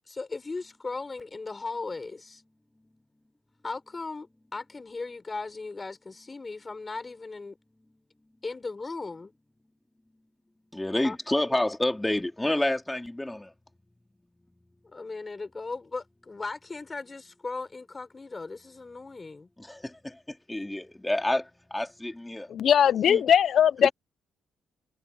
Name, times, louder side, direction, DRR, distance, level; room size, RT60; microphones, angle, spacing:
voice 1, 0.1-2.4 3.6-7.6 8.4-9.3 11.0-11.2 14.8-19.5, left 3 dB, 25° left, 5.2 m, -37 dB
voice 2, 10.7-13.5 19.6-22.5 23.1-23.2 23.8-23.9, left 1 dB, 10° left, 3.4 m, -29 dB
voice 3, 22.5-23.9, left 9 dB, 60° left, 0.7 m, -20 dB
cardioid pair, 90°, 0 cm